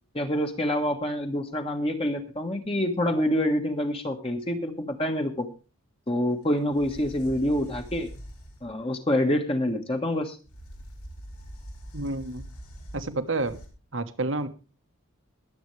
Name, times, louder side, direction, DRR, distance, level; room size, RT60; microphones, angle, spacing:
voice 1, 0.1-5.5 6.1-8.1 8.6-10.4, left 1 dB, 25° left, 4 dB, 1.4 m, -26 dB
sound 1, 6.4-6.5 6.7-8.7 10.5-13.7, equal, 90° left, 4.6 m, -43 dB
voice 2, 11.9-12.4 12.9-13.6 13.9-14.5, right 2 dB, 60° right, 10 dB, 1.2 m, -29 dB
22.0 x 8.0 x 3.2 m, 0.33 s
head